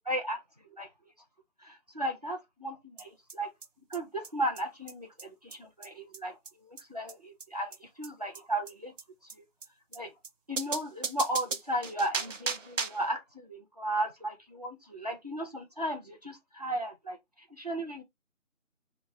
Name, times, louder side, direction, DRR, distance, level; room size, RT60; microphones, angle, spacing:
voice 1, 0.1-0.4 0.7-0.9 1.6-3.5 3.9-6.3 6.6-8.9 9.2-9.4 9.9-10.1 10.5-17.2 17.5-18.0, right 1 dB, 30° right, 0.6 m, -35 dB
sound 1, 3.0-3.1 3.3-3.4 3.6-3.7 3.9-4.0 4.2-4.3 4.6-4.7 4.9-5.0 5.2-5.3 5.5-5.6 5.8-5.9 6.1-6.2 6.5-6.6 6.8-6.9 7.1-7.2 7.4-7.5 7.7-7.8 8.0-8.1 8.3-8.4 8.7-8.8 9.0-9.1 9.3-9.4 9.6-9.7 9.9-10.0 10.2-10.3 10.6-13.1, right 5 dB, 65° right, 0.7 m, -36 dB
4.1 x 2.1 x 3.4 m
figure-of-eight pair, 165°, 41 cm